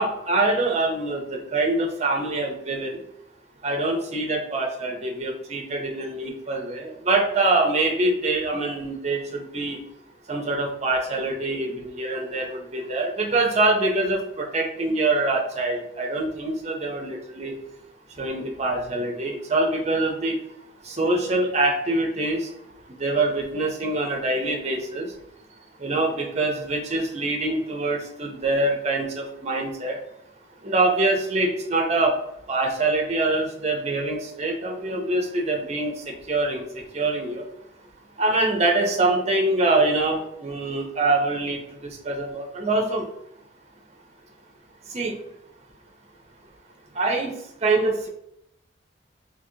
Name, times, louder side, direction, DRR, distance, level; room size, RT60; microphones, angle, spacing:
voice 1, 0.0-3.0 3.6-9.8 10.3-17.5 18.2-20.4 20.8-22.5 23.0-25.1 25.8-30.0 30.6-32.1 32.5-37.5 38.2-43.0 44.9-45.2 46.9-47.3 47.6-48.1, right 2 dB, 35° right, 1 dB, 0.6 m, -24 dB
4.0 x 2.8 x 2.8 m, 0.78 s
head